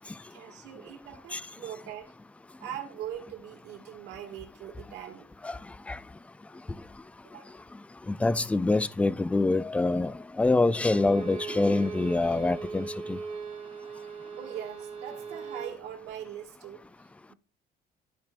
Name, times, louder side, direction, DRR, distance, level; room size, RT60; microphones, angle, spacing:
voice 1, 0.3-2.1 2.6-5.3 7.2-7.6 14.4-17.4, right 10 dB, 85° right, 1.9 m, -42 dB
voice 2, 8.1-13.2, left 2 dB, 10° left, 0.3 m, -25 dB
Bowed string instrument, 10.8-15.8, right 5 dB, 40° right, 2.9 m, -39 dB
13.5 x 4.8 x 2.5 m
cardioid pair, 110°, 17 cm